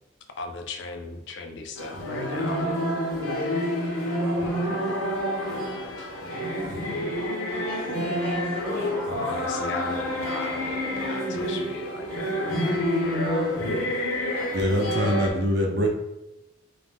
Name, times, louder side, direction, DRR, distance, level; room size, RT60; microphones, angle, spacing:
voice 1, 0.4-2.6 9.3-13.4, left 3 dB, 55° left, 5 dB, 0.4 m, -37 dB
sound 1, 1.8-15.3, equal, 90° left, 0.7 m, -28 dB
voice 2, 4.1-5.3 7.2-9.2, right 1 dB, 5° left, -8 dB, 0.5 m, -39 dB
voice 3, 14.5-15.9, equal, 50° right, 0 dB, 0.6 m, -24 dB
2.5 x 2.1 x 3.4 m, 0.91 s
head